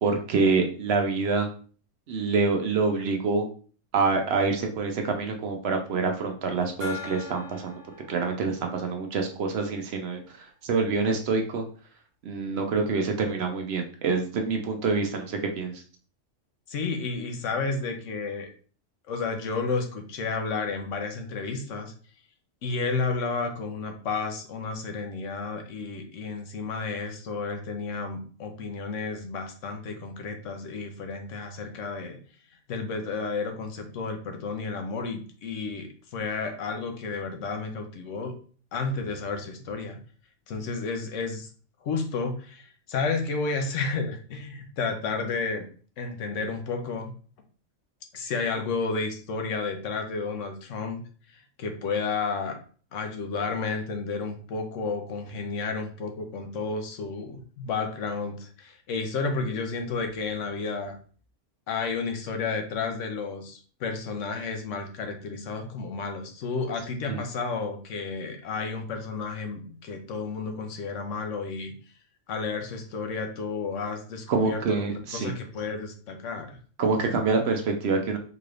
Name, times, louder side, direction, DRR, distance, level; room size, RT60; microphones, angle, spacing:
voice 1, 0.0-1.5 2.1-3.5 3.9-7.8 8.1-11.6 12.2-15.7 67.1-67.2 74.3-75.3 76.8-78.2, right 4 dB, 65° right, 4 dB, 0.8 m, -26 dB
Gong, 6.8-10.1, left 6 dB, 35° right, 1.4 m, -43 dB
voice 2, 16.7-18.5 19.1-21.9 22.6-32.2 32.7-38.3 38.7-40.0 40.5-41.5 41.8-45.7 46.0-47.1 48.1-51.0 51.3-52.6 52.9-61.0 61.7-71.7 72.3-76.6, left 4 dB, 80° left, 5 dB, 1.0 m, -32 dB
3.8 x 3.2 x 2.4 m, 0.41 s
omnidirectional pair, 1.3 m